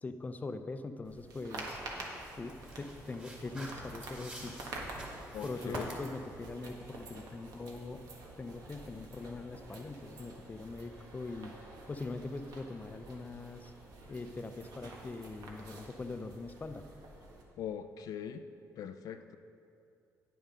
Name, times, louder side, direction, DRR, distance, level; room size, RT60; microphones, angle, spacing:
voice 1, 0.0-1.8 2.4-4.6 5.4-8.0 8.4-11.5 11.9-13.7 14.1-16.9, left 3 dB, 25° left, 9 dB, 0.5 m, -42 dB
sound 1, 1.0-17.4, right 2 dB, 75° right, 1.5 m, -48 dB
sound 2, 1.6-6.7, right 1 dB, 20° right, 2.0 m, -49 dB
voice 2, 5.3-5.9 17.6-18.4 18.8-19.4, left 9 dB, 75° left, 8 dB, 0.4 m, -41 dB
9.4 x 7.3 x 5.5 m, 2.6 s
cardioid pair, 95°, 6 cm